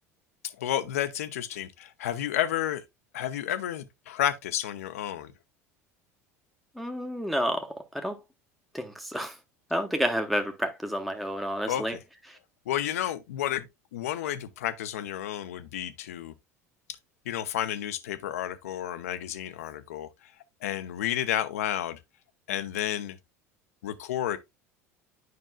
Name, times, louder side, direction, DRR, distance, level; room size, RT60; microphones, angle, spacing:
voice 1, 0.6-2.8 3.1-5.3 11.6-12.0 12.7-16.3 17.3-20.3 20.6-22.0 22.5-23.2 23.8-24.4, left 11 dB, 70° left, 0.7 m, -31 dB
voice 2, 6.8-7.7 7.9-8.2 8.7-9.3 9.7-11.9, equal, ahead, 0.9 m, -29 dB
9.4 x 5.3 x 2.2 m
figure-of-eight pair, 70°, 8 cm